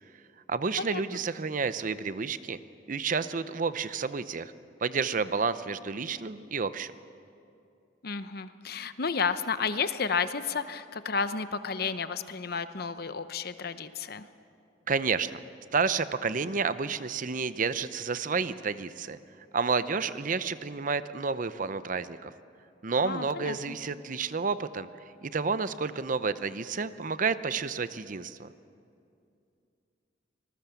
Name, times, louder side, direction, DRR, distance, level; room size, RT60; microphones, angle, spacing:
voice 1, 0.5-2.6 2.9-4.5 4.8-6.9 14.9-15.4 15.7-19.2 19.5-22.3 22.8-24.9 25.2-28.5, right 5 dB, 45° right, 13 dB, 0.7 m, -30 dB
voice 2, 8.0-14.3 23.0-23.7, left 5 dB, 55° left, 11 dB, 0.9 m, -32 dB
25.5 x 20.0 x 7.0 m, 2.5 s
head